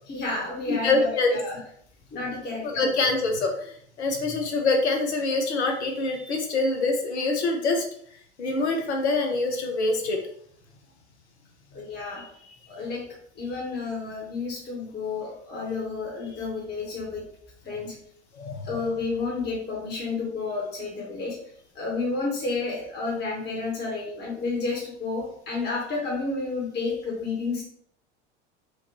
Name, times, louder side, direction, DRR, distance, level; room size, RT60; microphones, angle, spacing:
voice 1, 0.1-1.6 2.1-2.8 11.7-17.3 17.6-18.0 18.6-21.4 21.7-27.6, left 3 dB, 30° left, -2 dB, 1.3 m, -31 dB
voice 2, 0.7-1.4 2.6-7.8 8.4-10.2 18.4-18.8, left 3 dB, 70° left, 3 dB, 1.0 m, -25 dB
5.0 x 2.5 x 3.0 m, 0.63 s
figure-of-eight pair, 75°, 35 cm